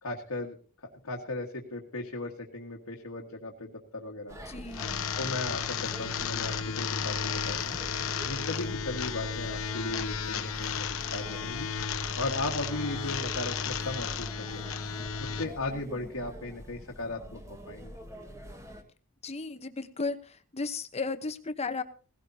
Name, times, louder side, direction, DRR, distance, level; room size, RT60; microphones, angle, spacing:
voice 1, 0.0-0.6 1.0-4.4 5.2-7.8 8.3-11.7 12.2-14.8 15.2-18.0, left 2 dB, 85° left, -1 dB, 1.7 m, -37 dB
sound 1, 4.3-18.8, equal, 15° right, 1.6 m, -45 dB
voice 2, 4.5-4.9 19.2-20.2 20.5-21.8, left 4 dB, 30° left, 10 dB, 1.0 m, -34 dB
sound 2, 4.7-15.4, left 6 dB, 70° left, 1.0 m, -33 dB
18.0 x 16.5 x 2.8 m, 0.36 s
head